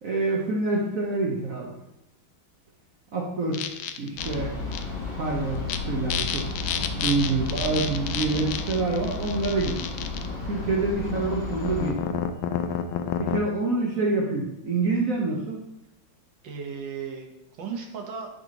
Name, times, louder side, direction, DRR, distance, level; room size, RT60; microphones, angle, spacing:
voice 1, 0.0-1.8 3.1-4.5 5.2-6.5 7.0-9.8 10.4-12.2 13.2-15.6, right 3 dB, 50° right, -3 dB, 1.2 m, -27 dB
sound 1, 3.5-4.3 4.7-4.8 5.5-5.8 6.1-10.3 11.1-13.4, left 8 dB, 90° left, 1.4 m, -30 dB
sound 2, 4.2-11.9, left 3 dB, 70° left, 2.6 m, -33 dB
voice 2, 6.7-7.1 12.6-12.9 16.4-18.3, right 6 dB, 70° right, 2 dB, 1.8 m, -36 dB
11.0 x 4.2 x 2.9 m, 0.90 s
omnidirectional pair, 2.1 m